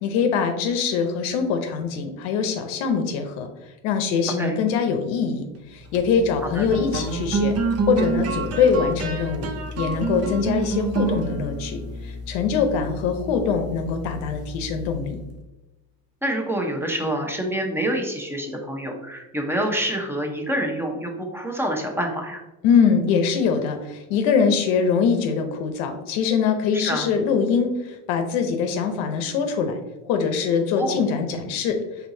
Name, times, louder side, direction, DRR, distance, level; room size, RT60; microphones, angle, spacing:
voice 1, 0.0-3.5 3.8-5.4 5.7-7.5 7.9-9.5 9.8-15.2 22.6-29.8 30.0-31.8, left 6 dB, 75° left, 5 dB, 0.7 m, -23 dB
sound 1, 5.7-15.3, right 3 dB, 35° right, 0.6 m, -29 dB
voice 2, 16.2-22.4 26.7-27.1 30.8-31.0, right 1 dB, 5° right, 2 dB, 0.8 m, -27 dB
4.4 x 4.0 x 2.7 m, 1.1 s
supercardioid pair, 100°, 43 cm